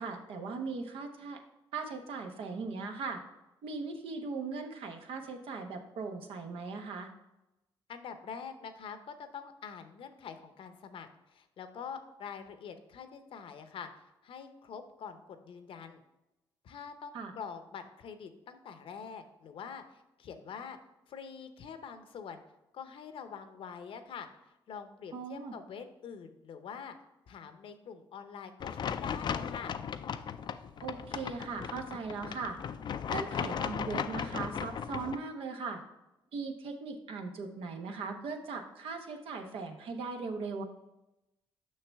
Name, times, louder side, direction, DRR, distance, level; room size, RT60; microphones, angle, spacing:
voice 1, 0.0-1.4 1.7-3.2 3.6-7.1 17.1-17.3 25.1-25.6 30.8-32.6 33.1-35.8 36.3-40.6, right 4 dB, 80° right, 4 dB, 1.0 m, -39 dB
voice 2, 7.9-16.0 16.6-20.8 21.1-22.4 22.7-26.9 27.3-29.8, left 6 dB, 70° left, 9 dB, 0.7 m, -45 dB
sound 1, 28.6-35.2, left 7 dB, 55° left, 0.4 m, -36 dB
6.5 x 5.8 x 3.4 m, 0.94 s
cardioid pair, 65°, 9 cm